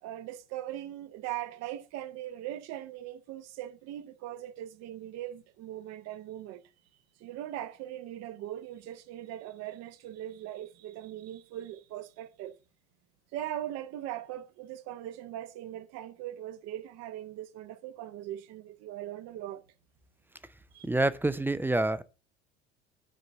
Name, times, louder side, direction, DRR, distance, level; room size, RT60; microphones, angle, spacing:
voice 1, 0.0-6.6 7.2-12.6 13.3-19.6 20.7-20.9, right 12 dB, 50° right, 0.9 m, -40 dB
voice 2, 20.8-22.0, right 2 dB, 5° right, 0.5 m, -27 dB
9.6 x 4.0 x 7.0 m
figure-of-eight pair, 70°, 34 cm